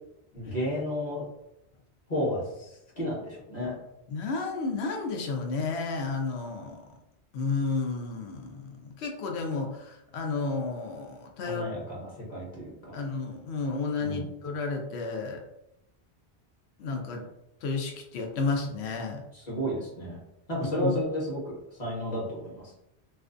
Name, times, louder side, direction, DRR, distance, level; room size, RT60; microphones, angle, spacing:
voice 1, 0.3-1.3 2.1-3.7 11.4-13.0 14.0-14.3 17.1-17.2 19.3-20.2 20.5-21.5 21.8-22.7, equal, 40° left, -5 dB, 0.9 m, -32 dB
voice 2, 4.1-6.8 7.3-11.6 12.9-15.4 16.8-17.2 17.6-19.2 20.6-20.9, left 4 dB, 80° left, 2 dB, 0.8 m, -32 dB
2.5 x 2.2 x 2.4 m, 0.86 s
omnidirectional pair, 1.1 m